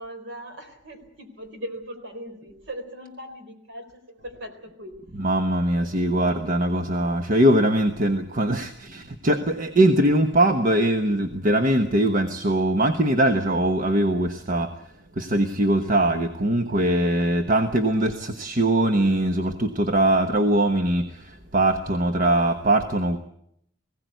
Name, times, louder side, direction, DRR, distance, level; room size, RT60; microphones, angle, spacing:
voice 1, 0.0-5.2 5.8-6.1, equal, 65° right, 7 dB, 3.9 m, -39 dB
voice 2, 5.2-14.7 15.2-23.2, right 1 dB, 45° right, 6 dB, 1.2 m, -21 dB
20.0 x 17.0 x 9.3 m, 0.74 s
head